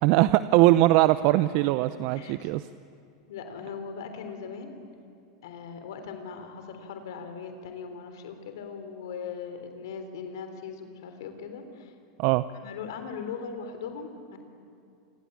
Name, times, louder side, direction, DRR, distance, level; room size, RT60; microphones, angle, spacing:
voice 1, 0.0-2.7 12.2-12.4, right 16 dB, 55° right, 14 dB, 0.6 m, -21 dB
voice 2, 2.1-2.5 3.3-4.7 5.4-11.9 12.5-14.4, left 6 dB, 75° left, 7 dB, 3.5 m, -39 dB
27.0 x 22.5 x 8.7 m, 2.6 s
supercardioid pair, 120°, 2 cm